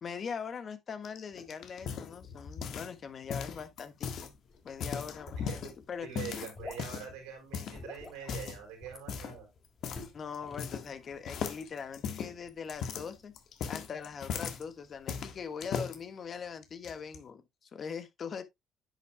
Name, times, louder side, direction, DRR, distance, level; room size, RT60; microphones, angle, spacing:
voice 1, 0.0-4.3 4.6-6.1 10.1-13.3 13.7-18.4, left 6 dB, 50° left, 1.5 m, -41 dB
sound 1, 1.0-3.0 3.3-4.3 4.7-5.7 6.1-7.1 7.5-7.8 8.2-8.6 9.1-9.4 9.8-10.1 10.3-11.0 11.3-14.6 15.1-16.0 16.6-17.2, left 7 dB, 65° left, 1.6 m, -38 dB
sound 2, 4.0-15.8, left 3 dB, 35° left, 4.4 m, -54 dB
voice 2, 6.0-9.5, right 8 dB, 90° right, 4.7 m, -44 dB
9.9 x 7.3 x 2.3 m
supercardioid pair, 70°, 0 cm